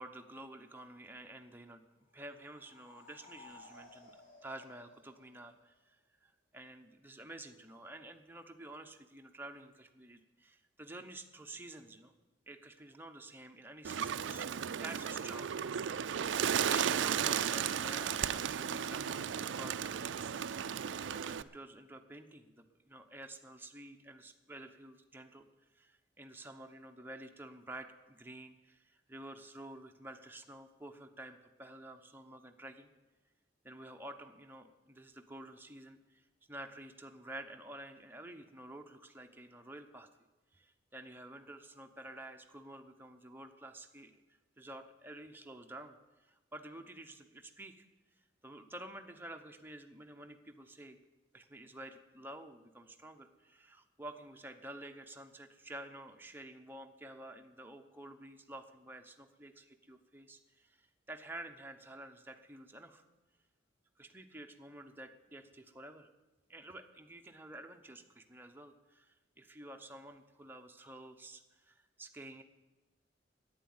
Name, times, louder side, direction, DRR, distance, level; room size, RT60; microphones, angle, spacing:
voice 1, 0.0-1.8 2.1-6.0 6.2-12.1 12.5-14.5 14.8-15.5 16.5-20.1 20.6-25.5 25.7-32.9 33.6-36.2 36.5-40.1 40.5-44.2 44.6-47.8 48.4-51.0 51.3-63.0 64.0-66.1 66.5-72.4, right 1 dB, 10° right, 5 dB, 0.9 m, -50 dB
sound 1, 2.1-5.7, left 3 dB, 45° left, 3.9 m, -58 dB
Bird, 13.8-21.4, right 8 dB, 70° right, 0.4 m, -34 dB
11.0 x 9.6 x 9.5 m, 1.2 s
head